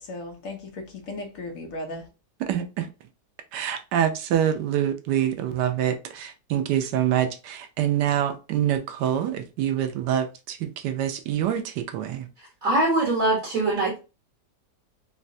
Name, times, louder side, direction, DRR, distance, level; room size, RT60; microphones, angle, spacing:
voice 1, 0.0-2.1, left 2 dB, 60° left, 1.2 m, -36 dB
voice 2, 2.5-2.9 3.5-12.3, right 10 dB, 80° right, 1.2 m, -26 dB
voice 3, 12.6-14.0, right 2 dB, 55° right, 1.5 m, -22 dB
3.9 x 2.2 x 2.5 m
omnidirectional pair, 1.8 m